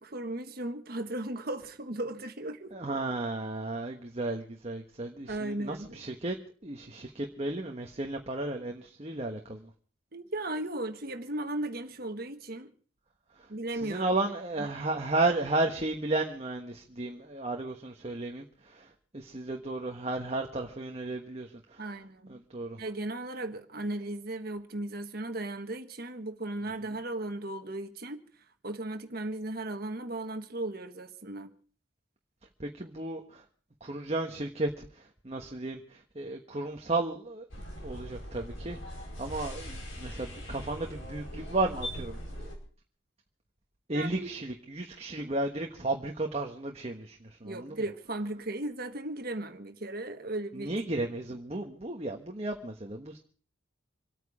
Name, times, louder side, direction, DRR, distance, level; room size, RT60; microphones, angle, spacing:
voice 1, 0.0-2.7 5.3-6.0 10.1-12.7 13.5-14.1 14.6-14.7 21.8-22.4 22.8-28.2 28.6-31.5 43.9-44.5 47.4-50.8, right 1 dB, 50° right, 1.4 m, -36 dB
voice 2, 2.7-6.4 6.6-9.7 13.3-13.5 13.8-21.9 22.3-22.8 32.6-33.4 33.8-42.6 43.9-47.8 50.5-53.2, right 2 dB, 30° right, 1.3 m, -34 dB
sound 1, 37.5-42.6, equal, 80° left, 5.3 m, -41 dB
27.0 x 9.2 x 4.9 m
head